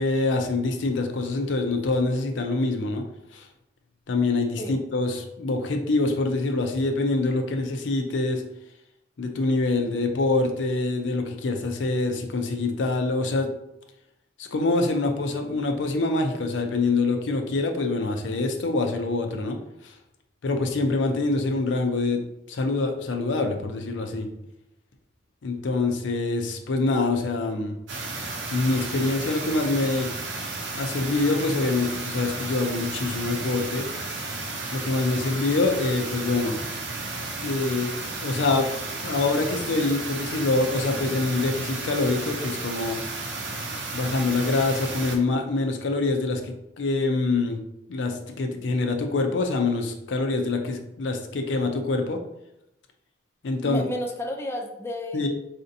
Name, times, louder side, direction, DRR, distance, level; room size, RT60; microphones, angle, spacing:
voice 1, 0.0-3.0 3.3-3.5 4.1-8.4 9.2-13.5 14.4-19.6 19.8-19.9 20.4-24.3 25.4-27.8 28.5-30.1 30.7-34.2 34.7-36.6 37.4-38.0 38.2-43.0 43.9-47.6 47.9-52.2 53.4-53.8 55.1-55.3, left 3 dB, 80° left, 4 dB, 0.5 m, -25 dB
sound 1, 27.9-45.2, right 3 dB, 80° right, 0.6 m, -33 dB
voice 2, 53.6-55.3, left 1 dB, 15° left, 1 dB, 0.3 m, -32 dB
4.2 x 2.6 x 2.6 m, 0.86 s
head